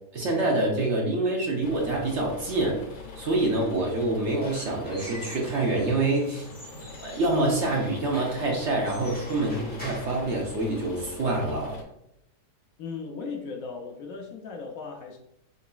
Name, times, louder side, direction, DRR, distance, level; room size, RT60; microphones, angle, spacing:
voice 1, 0.1-2.8 3.2-6.5 7.0-11.8, right 2 dB, 55° right, -1 dB, 0.8 m, -26 dB
sound 1, 1.6-11.8, left 4 dB, 85° left, 1.4 m, -44 dB
Squeak / Wood, 4.1-11.1, equal, 10° left, 0.6 m, -44 dB
voice 2, 12.8-15.2, left 4 dB, 70° left, 2 dB, 0.8 m, -37 dB
3.9 x 3.9 x 2.2 m, 0.78 s
omnidirectional pair, 1.8 m